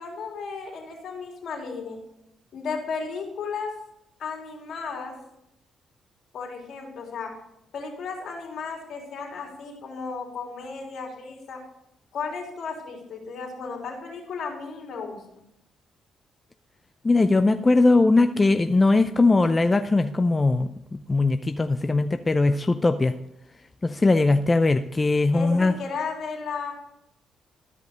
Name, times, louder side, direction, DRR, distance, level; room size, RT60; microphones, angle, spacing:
voice 1, 0.0-2.0 2.5-3.7 4.2-5.1 6.3-7.3 7.7-11.6 12.1-15.2 25.3-26.7, left 5 dB, 65° left, 0 dB, 3.3 m, -34 dB
voice 2, 17.0-20.7 21.1-23.1 23.8-25.7, left 3 dB, 20° left, 8 dB, 0.5 m, -20 dB
13.0 x 5.3 x 6.5 m, 0.81 s
cardioid pair, 90°, 0 cm